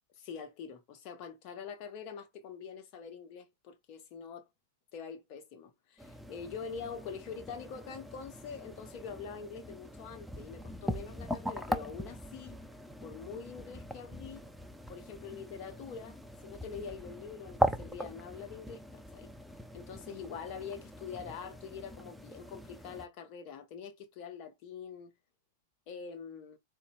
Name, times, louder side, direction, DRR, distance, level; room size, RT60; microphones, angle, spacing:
voice 1, 0.2-4.5 4.9-12.6 13.0-14.5 14.9-19.3 19.7-25.1 25.9-26.6, left 6 dB, 45° left, 0.9 m, -45 dB
sound 1, 6.0-23.1, equal, ahead, 0.5 m, -40 dB
3.9 x 2.8 x 2.2 m
hypercardioid pair, 100°, 0 cm